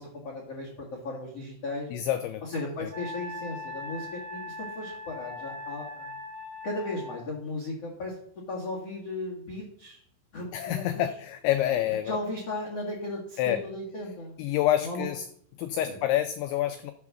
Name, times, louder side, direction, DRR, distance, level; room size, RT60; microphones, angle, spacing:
voice 1, 0.0-1.9 2.5-6.1 6.6-8.2 8.5-10.0 10.3-11.1 12.0-14.4 14.8-15.0 15.8-16.0, left 2 dB, 50° left, 0 dB, 1.9 m, -36 dB
voice 2, 1.9-2.9 10.5-12.1 13.4-13.6 14.4-15.3 15.6-16.9, left 12 dB, 90° left, 9 dB, 2.6 m, -28 dB
Wind instrument woodwind instrument, 2.9-7.2, left 2 dB, 50° right, 4.3 m, -40 dB
12.0 x 8.5 x 6.2 m, 0.66 s
omnidirectional pair, 6.0 m